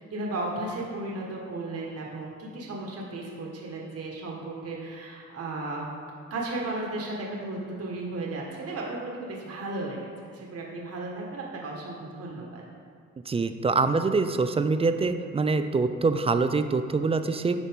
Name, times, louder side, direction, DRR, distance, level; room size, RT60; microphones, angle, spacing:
voice 1, 0.1-5.8 6.3-12.6, right 2 dB, 55° right, -2 dB, 1.4 m, -35 dB
voice 2, 13.3-17.6, right 4 dB, 20° right, 9 dB, 0.4 m, -25 dB
11.0 x 4.2 x 3.5 m, 2.3 s
cardioid pair, 90°, 30 cm